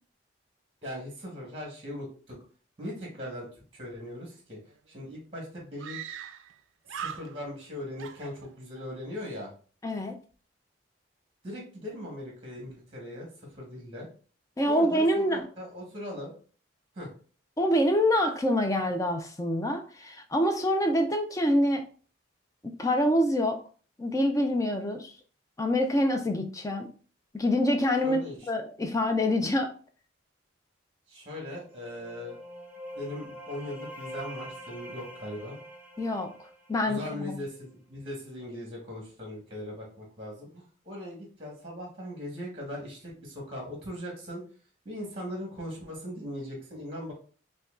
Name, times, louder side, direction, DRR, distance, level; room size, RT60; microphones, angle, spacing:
voice 1, 0.8-2.4 2.8-3.5 3.7-4.6 4.9-6.0 6.9-9.5 11.4-13.3 13.5-14.1 14.7-16.3 16.9-17.1 28.0-28.4 31.1-32.4 32.9-35.6 36.8-44.4 44.8-47.1, left 1 dB, 30° right, -1 dB, 1.2 m, -39 dB
Screaming, 4.7-4.8 5.0-5.1 5.8-6.6 6.9-7.7 8.0-8.9, right 8 dB, 75° right, 0.3 m, -40 dB
voice 2, 9.8-10.1 14.6-15.5 17.6-21.9 22.6-23.6 24.0-25.1 25.6-26.9 27.3-28.2 28.5-29.7 36.0-36.3 36.7-37.3, left 1 dB, 15° left, 5 dB, 0.4 m, -26 dB
sound 1, 31.6-37.3, equal, 10° right, 0.8 m, -45 dB
5.3 x 2.2 x 2.4 m, 0.40 s
head